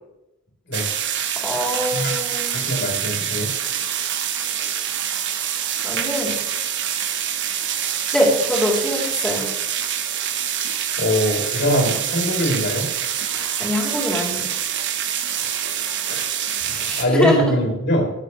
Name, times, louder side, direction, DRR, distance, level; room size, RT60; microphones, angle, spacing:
sound 1, 0.7-17.1, right 9 dB, 55° right, 1.1 m, -25 dB
voice 1, 1.4-2.6 5.8-6.4 7.5-7.7 8.1-9.5 13.3-14.6 16.6-17.5, equal, 5° left, -3 dB, 3.6 m, -23 dB
voice 2, 2.5-3.5 11.0-12.9 15.4-15.6 16.1-16.4 17.0-18.1, equal, 55° left, 0 dB, 4.5 m, -22 dB
21.0 x 8.4 x 3.4 m, 0.95 s
head